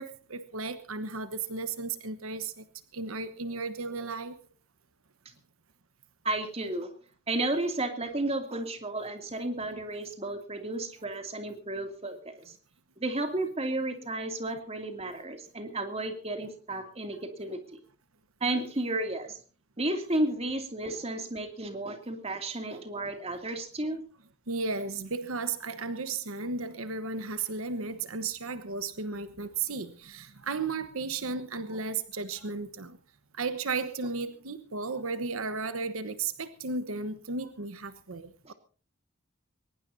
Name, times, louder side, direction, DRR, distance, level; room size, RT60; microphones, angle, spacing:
voice 1, 0.0-2.6 2.9-4.4 9.7-9.8 20.9-21.0 22.7-22.8 24.5-33.0 33.4-38.5, right 4 dB, 80° right, 11 dB, 1.2 m, -34 dB
voice 2, 6.2-6.9 7.3-12.5 13.0-17.8 18.4-19.4 19.8-24.0 38.4-38.5, right 2 dB, 30° right, 5 dB, 2.6 m, -33 dB
22.0 x 19.5 x 2.7 m, 0.39 s
head